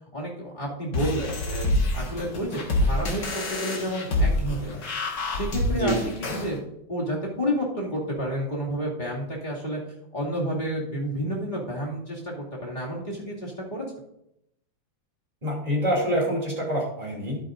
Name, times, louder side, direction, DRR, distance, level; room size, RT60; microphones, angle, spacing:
voice 1, 0.1-4.8 5.3-6.6 6.9-9.8 10.1-13.8, equal, 25° left, -4 dB, 2.5 m, -30 dB
sound 1, 0.9-6.5, left 1 dB, 65° left, 2.2 m, -26 dB
voice 2, 5.7-6.1 15.4-17.4, equal, 20° right, -3 dB, 2.8 m, -26 dB
11.5 x 9.3 x 2.6 m, 0.80 s
omnidirectional pair, 2.1 m